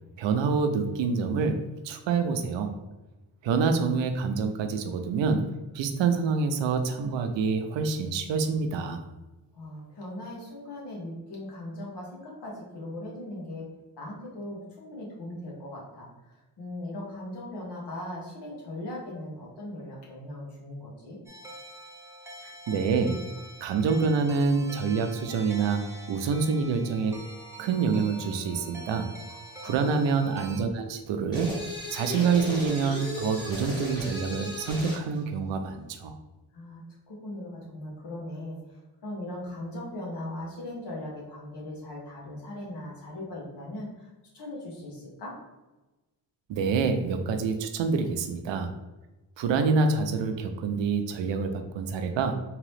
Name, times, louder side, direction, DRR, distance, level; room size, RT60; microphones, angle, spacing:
voice 1, 0.2-2.7 3.4-9.0 22.7-23.2 23.6-27.2 27.6-29.1 29.6-31.6 31.9-36.1 46.5-48.7 49.4-52.4, right 5 dB, 90° right, 7 dB, 0.6 m, -27 dB
voice 2, 9.5-13.6 13.9-21.2 29.3-29.4 29.6-29.9 36.5-45.3, left 1 dB, 65° left, -3 dB, 1.4 m, -39 dB
sound 1, 21.3-30.6, right 1 dB, 5° right, 0.4 m, -45 dB
sound 2, 31.3-35.1, left 1 dB, 10° left, 1.3 m, -36 dB
3.7 x 2.9 x 3.3 m, 1.1 s
wide cardioid pair, 140°, 43 cm